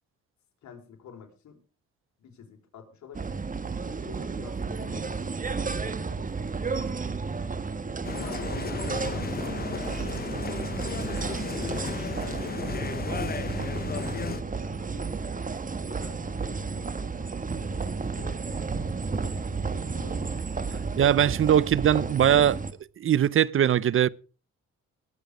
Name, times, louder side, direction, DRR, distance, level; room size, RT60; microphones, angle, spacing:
voice 1, 0.6-1.6 2.2-3.3 3.8-5.2 5.5-6.5 8.1-10.7 11.0-11.9 12.2-15.6 15.9-17.4 17.8-18.6 19.2-20.3, left 7 dB, 65° left, 4.5 m, -48 dB
sound 1, 3.1-22.7, right 4 dB, 25° right, 1.5 m, -32 dB
sound 2, 8.0-14.4, left 6 dB, 30° left, 0.8 m, -35 dB
voice 2, 21.0-22.6 23.0-24.1, right 10 dB, 45° right, 0.6 m, -21 dB
19.5 x 8.5 x 5.0 m
cardioid pair, 90°, 30 cm